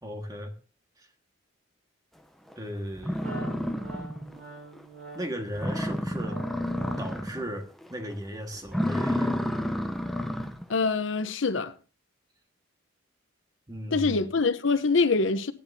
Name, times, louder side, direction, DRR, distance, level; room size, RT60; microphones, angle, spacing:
voice 1, 0.0-0.5 1.0-1.1 2.6-3.3 5.1-6.4 7.0-9.4 13.7-14.3, equal, 20° right, 1.6 m, -36 dB
sound 1, 2.5-2.6 3.0-4.4 4.8-4.9 5.2-5.3 5.6-7.5 7.8-8.1 8.6-10.6, left 1 dB, ahead, 0.7 m, -30 dB
Wind instrument woodwind instrument, 3.2-7.2, right 4 dB, 40° right, 7.6 m, -44 dB
voice 2, 10.7-11.7 13.9-15.5, left 4 dB, 70° left, 0.8 m, -24 dB
17.0 x 11.0 x 2.7 m
head